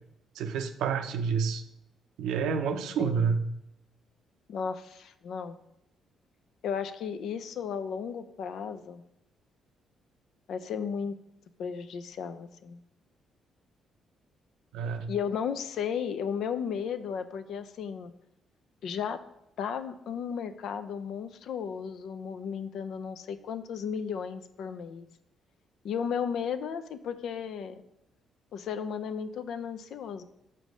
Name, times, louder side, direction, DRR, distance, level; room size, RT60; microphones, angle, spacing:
voice 1, 0.4-1.6 2.2-3.4 14.7-15.1, right 6 dB, 85° right, 7 dB, 0.6 m, -28 dB
voice 2, 3.0-3.3 4.5-5.6 6.6-9.0 10.5-11.2 11.6-12.8 15.1-18.1 18.8-19.2 19.6-25.1 25.8-27.8 28.5-30.2, left 7 dB, 75° left, 10 dB, 0.5 m, -34 dB
7.6 x 3.3 x 5.2 m, 0.85 s
cardioid pair, 90°, 0 cm